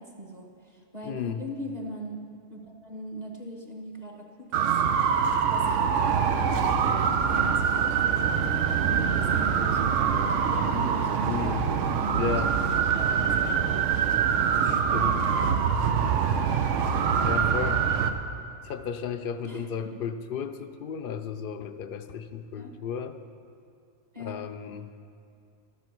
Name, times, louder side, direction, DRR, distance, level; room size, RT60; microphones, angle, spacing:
voice 1, 0.0-2.2 2.5-4.8 5.2-12.4 12.9-13.4 14.5-15.7 16.4-16.7 19.4-19.7 22.6-22.7 24.1-24.4, equal, 35° right, 1 dB, 1.2 m, -40 dB
voice 2, 1.0-1.4 11.3-11.7 12.1-12.5 14.7-15.2 17.2-17.9 18.6-23.2 24.2-24.9, left 7 dB, 60° left, 9 dB, 0.7 m, -34 dB
sound 1, 4.5-18.1, right 7 dB, 85° right, 1.0 m, -24 dB
12.5 x 7.6 x 6.0 m, 2.4 s
omnidirectional pair, 1.2 m